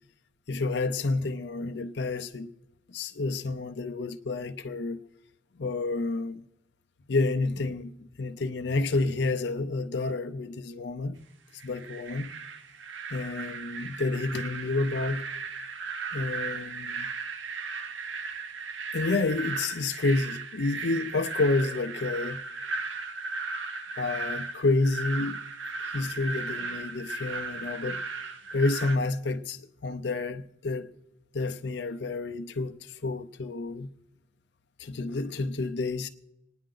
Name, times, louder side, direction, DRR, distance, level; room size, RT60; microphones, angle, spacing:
voice 1, 0.5-2.5 2.9-5.0 5.6-6.5 7.1-11.2 11.6-12.3 13.1-15.2 16.1-17.1 18.9-22.4 24.0-25.4 25.9-28.0 28.5-30.9 31.3-33.9 34.8-36.1, left 3 dB, 60° left, 0.6 m, -29 dB
sound 1, 11.6-29.0, right 4 dB, 80° right, 0.9 m, -36 dB
26.5 x 10.0 x 3.8 m
head